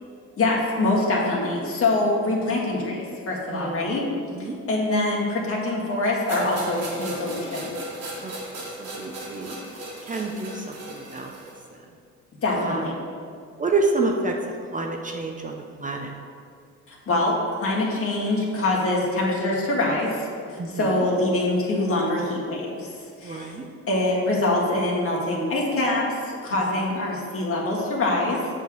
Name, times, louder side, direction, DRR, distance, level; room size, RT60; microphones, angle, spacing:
voice 1, 0.4-4.1 4.7-7.8 12.4-13.0 16.9-17.4 17.6-22.9 23.2-23.5 23.9-28.5, left 2 dB, 50° left, -3 dB, 1.8 m, -24 dB
voice 2, 3.5-3.9 4.3-4.6 8.2-9.6 10.1-11.3 12.6-12.8 13.6-14.3 14.7-16.1 20.6-20.9 23.2-23.7, right 3 dB, 25° right, 1 dB, 0.7 m, -28 dB
sound 1, 6.3-11.6, right 1 dB, 55° right, 1.7 m, -37 dB
7.0 x 3.7 x 6.1 m, 2.2 s
cardioid pair, 90°, 30 cm